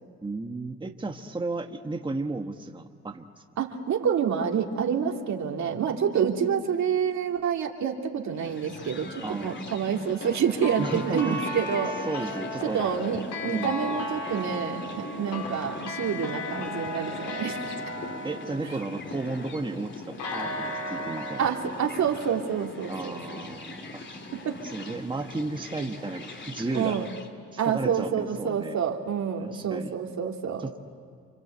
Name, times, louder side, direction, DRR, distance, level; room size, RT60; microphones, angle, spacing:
voice 1, 0.2-3.3 9.2-9.7 10.8-11.6 12.1-12.8 13.5-13.9 18.2-20.5 20.9-21.4 22.9-23.8 24.7-27.1 27.7-28.8 29.4-29.9 30.6-30.8, right 3 dB, 15° right, 3 dB, 1.4 m, -33 dB
voice 2, 3.6-9.1 9.4-12.0 12.6-17.7 21.4-23.2 24.4-24.6 26.7-27.1 27.6-30.7, right 7 dB, 65° right, 1 dB, 2.9 m, -28 dB
sound 1, 8.3-27.3, left 2 dB, 40° left, 2.8 m, -41 dB
sound 2, 10.2-19.4 20.2-23.1, left 1 dB, 80° left, 3.8 m, -36 dB
29.5 x 25.0 x 8.1 m, 2.2 s
cardioid pair, 90°, 30 cm